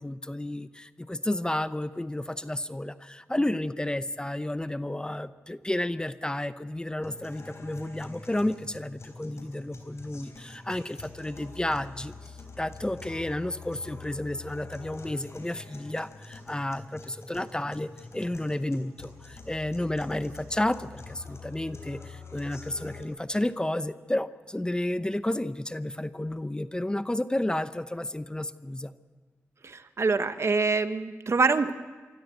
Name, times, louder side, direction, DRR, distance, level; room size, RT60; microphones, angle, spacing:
voice 1, 0.0-28.9, left 1 dB, 15° left, 13 dB, 0.7 m, -31 dB
sound 1, 7.0-23.0, left 4 dB, 60° left, 3.7 m, -46 dB
voice 2, 29.6-31.7, right 4 dB, 55° right, 11 dB, 1.0 m, -25 dB
25.0 x 13.5 x 7.9 m, 1.4 s
cardioid pair, 55°, 5 cm